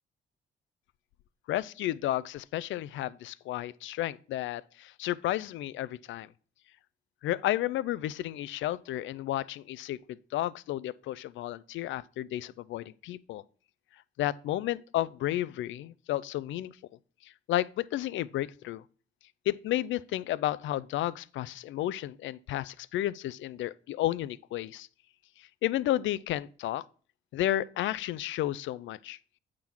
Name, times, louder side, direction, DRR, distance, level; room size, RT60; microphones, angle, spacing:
voice 1, 1.5-6.3 7.2-13.4 14.2-16.7 17.5-18.8 19.5-24.9 25.6-26.8 27.3-29.2, left 14 dB, 75° left, 0.4 m, -32 dB
8.7 x 3.7 x 6.0 m
cardioid pair, 90°, 20 cm